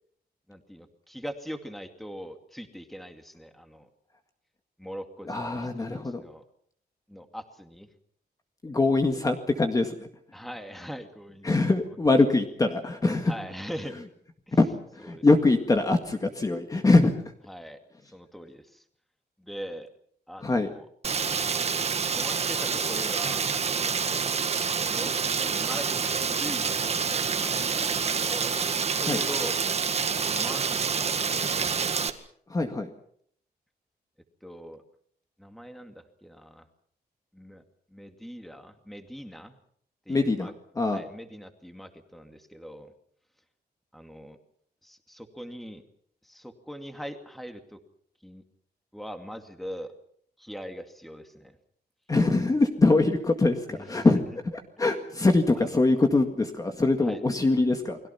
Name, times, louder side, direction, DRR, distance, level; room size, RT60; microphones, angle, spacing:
voice 1, 0.5-3.9 4.8-6.4 7.1-7.9 10.3-12.0 13.2-14.0 14.5-14.6 15.0-15.2 17.5-18.8 19.4-19.9 20.3-20.9 22.1-24.0 24.9-25.1 25.4-29.6 30.3-31.9 34.4-34.8 35.4-36.6 37.3-37.6 37.9-39.6 40.1-40.5 40.9-42.9 43.9-44.4 44.8-45.8 46.2-47.8 48.2-48.4 48.9-49.9 50.4-51.6 53.7-54.3 55.6-55.8 57.0-57.2 57.5-57.6, equal, ahead, 6 dB, 2.3 m, -42 dB
voice 2, 5.3-6.2 8.6-10.1 11.4-13.3 14.6-14.7 14.9-17.2 20.4-20.7 29.1-29.2 32.5-32.9 40.1-41.0 52.1-54.2 54.8-58.0, left 3 dB, 20° left, 5 dB, 1.9 m, -23 dB
Rain, 21.0-32.1, right 6 dB, 40° right, 1.8 m, -27 dB
30.0 x 21.5 x 5.8 m, 0.63 s
wide cardioid pair, 175°, 17 cm